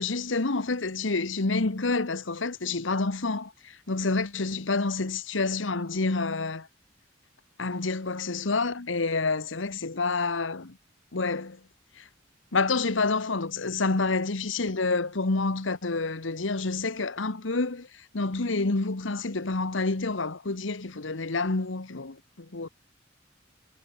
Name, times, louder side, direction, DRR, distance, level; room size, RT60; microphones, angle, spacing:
voice 1, 0.0-6.7 7.6-10.8 11.1-11.6 12.0-12.1 12.5-22.7, left 3 dB, 85° left, 1.3 m, -28 dB
head